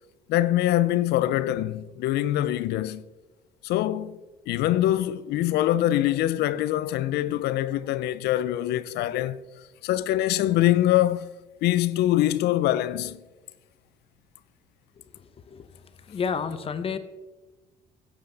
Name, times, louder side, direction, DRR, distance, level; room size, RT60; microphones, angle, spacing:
voice 1, 0.3-3.0 3.6-4.2 4.5-9.4 9.8-11.3 11.6-13.2, left 13 dB, 75° left, 0.5 m, -24 dB
voice 2, 15.1-15.7 16.0-17.0, left 6 dB, 35° left, 0.8 m, -31 dB
9.8 x 7.9 x 3.9 m
cardioid pair, 110°, 17 cm